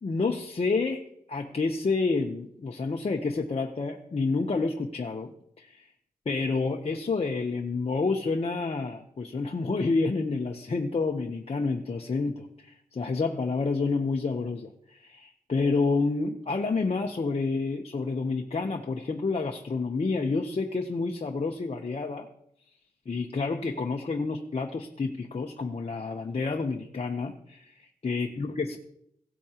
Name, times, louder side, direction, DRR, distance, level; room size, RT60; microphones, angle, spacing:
voice 1, 0.0-5.9 6.3-22.3 23.1-28.8, left 4 dB, 45° left, 2 dB, 0.8 m, -29 dB
17.0 x 8.4 x 2.9 m, 0.75 s
wide cardioid pair, 90°, 15 cm